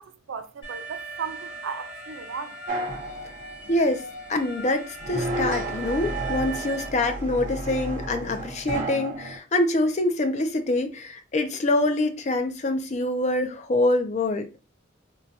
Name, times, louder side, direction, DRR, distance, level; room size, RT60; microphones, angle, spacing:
voice 1, 0.0-2.6, right 6 dB, 80° right, 0.4 m, -36 dB
Alarm, 0.6-6.9, right 3 dB, 70° left, 1.2 m, -39 dB
sound 1, 2.7-4.0 5.0-9.4, right 2 dB, 45° right, 0.7 m, -32 dB
voice 2, 3.7-4.0 4.3-14.5, left 2 dB, 35° left, 0.4 m, -25 dB
3.8 x 2.2 x 2.6 m
head